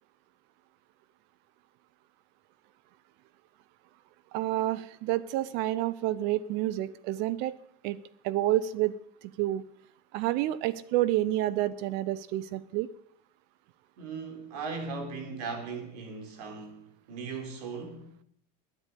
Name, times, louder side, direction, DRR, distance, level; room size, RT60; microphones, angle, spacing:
voice 1, 4.3-7.6 7.8-9.6 10.1-12.9, right 14 dB, 60° right, 0.7 m, -29 dB
voice 2, 14.0-18.2, right 4 dB, 80° right, 3.6 m, -38 dB
10.5 x 9.8 x 8.4 m
supercardioid pair, 115°, 20 cm